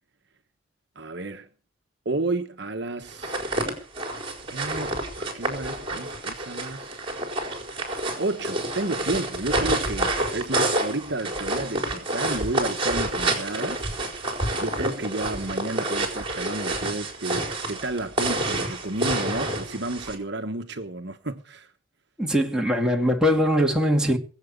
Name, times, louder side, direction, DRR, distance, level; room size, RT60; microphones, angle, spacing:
voice 1, 0.9-1.5 2.0-3.4 4.5-7.0 8.2-13.9 14.5-21.7, right 2 dB, 55° right, 1.3 m, -31 dB
sound 1, 3.1-20.2, right 1 dB, 25° right, 4.5 m, -28 dB
voice 2, 22.2-24.2, equal, 5° right, 2.8 m, -21 dB
22.0 x 8.4 x 6.7 m
head